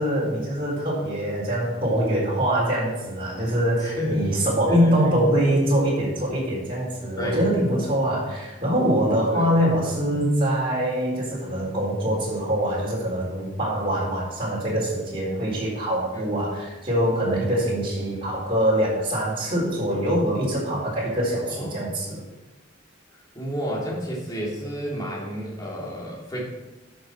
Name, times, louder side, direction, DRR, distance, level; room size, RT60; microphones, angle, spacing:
voice 1, 0.0-22.2, equal, 30° right, -6 dB, 4.1 m, -24 dB
voice 2, 3.8-4.3 4.6-5.1 7.2-7.4 9.3-9.5 16.1-16.3 21.5-21.9 23.3-26.5, equal, 20° left, -4 dB, 3.1 m, -30 dB
11.0 x 6.5 x 6.2 m, 1.0 s
head